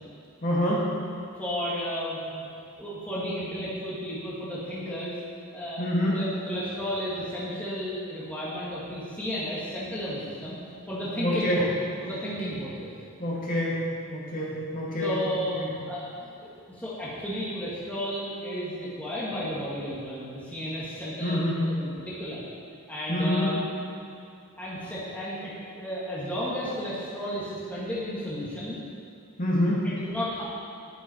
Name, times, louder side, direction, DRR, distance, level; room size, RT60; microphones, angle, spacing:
voice 1, 0.4-0.8 5.8-6.2 11.2-11.6 13.2-13.8 14.1-15.1 15.6-15.7 21.2-21.6 23.1-23.5 29.4-29.9, left 1 dB, 40° left, -6 dB, 2.3 m, -26 dB
voice 2, 1.4-2.4 2.8-5.1 5.5-5.8 6.1-10.6 10.9-11.7 12.0-12.9 15.0-22.4 22.9-23.5 24.6-28.8 29.8-30.4, equal, 5° left, -9 dB, 1.8 m, -33 dB
10.0 x 10.0 x 4.4 m, 2.5 s
head